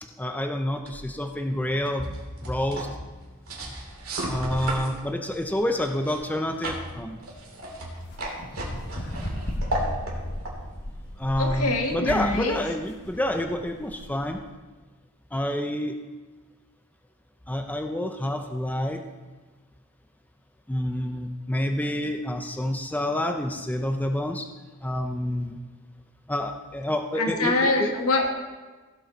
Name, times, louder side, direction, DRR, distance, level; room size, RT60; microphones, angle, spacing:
voice 1, 0.0-2.9 4.3-7.2 11.2-14.4 15.3-16.0 17.5-19.0 20.7-24.5 24.8-25.6 26.3-27.9, left 1 dB, 5° left, 5 dB, 0.6 m, -28 dB
sound 1, 0.8-11.9, right 1 dB, 70° right, 2.7 m, -36 dB
sound 2, 5.9-14.3, equal, 55° left, 1.8 m, -36 dB
voice 2, 11.4-12.5 27.2-28.3, left 2 dB, 80° left, 1 dB, 1.8 m, -24 dB
16.5 x 6.8 x 4.0 m, 1.3 s
head